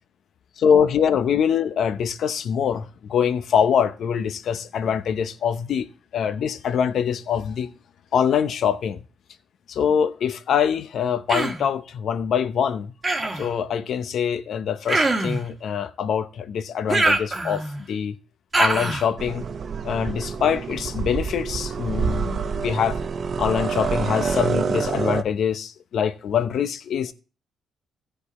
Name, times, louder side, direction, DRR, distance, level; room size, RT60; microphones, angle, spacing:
voice 1, 0.6-5.9 6.1-7.7 8.1-9.0 9.7-12.9 13.3-18.2 18.6-19.4 19.8-23.0 23.4-27.1, left 7 dB, 65° left, 0.8 m, -24 dB
Human voice, 11.3-11.7 13.0-13.5 14.9-15.5 16.9-17.8 18.5-19.1, right 2 dB, 25° right, 1.5 m, -23 dB
sound 1, 19.2-25.2, right 6 dB, 50° right, 0.7 m, -27 dB
15.0 x 5.3 x 4.2 m
cardioid pair, 90°, 0 cm